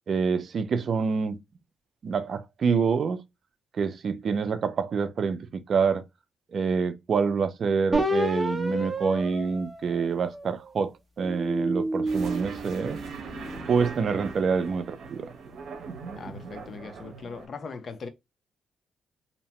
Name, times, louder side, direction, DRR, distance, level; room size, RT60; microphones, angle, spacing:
voice 1, 0.1-1.4 2.0-3.2 3.7-6.0 6.5-10.9 11.2-13.0 13.7-15.3, right 5 dB, 50° right, 0.4 m, -26 dB
sound 1, 7.9-10.6 11.2-13.7, right 1 dB, 10° right, 0.8 m, -30 dB
sound 2, 12.1-17.5, right 4 dB, 70° right, 0.7 m, -40 dB
voice 2, 16.1-18.1, left 4 dB, 45° left, 0.5 m, -39 dB
2.8 x 2.1 x 2.8 m
cardioid pair, 105°, 0 cm